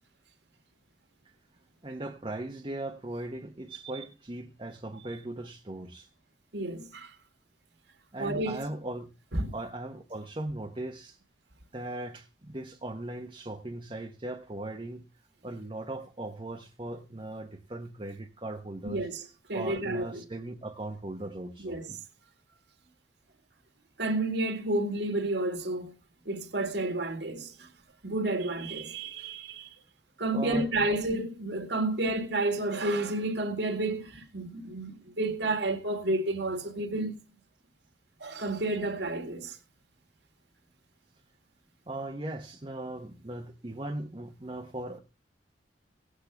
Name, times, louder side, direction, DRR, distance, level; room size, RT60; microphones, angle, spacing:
voice 1, 1.8-6.1 8.1-9.1 9.5-11.2 11.7-15.1 15.4-19.1 19.5-22.0 30.3-30.7 41.9-45.0, right 1 dB, 30° right, 1.0 m, -38 dB
voice 2, 6.5-7.1 8.2-8.6 9.3-9.5 18.9-20.2 21.6-21.9 24.0-25.9 26.3-27.7 28.0-29.7 30.2-37.2 38.2-39.6, right 2 dB, 65° right, 2.0 m, -31 dB
18.0 x 8.3 x 3.4 m
head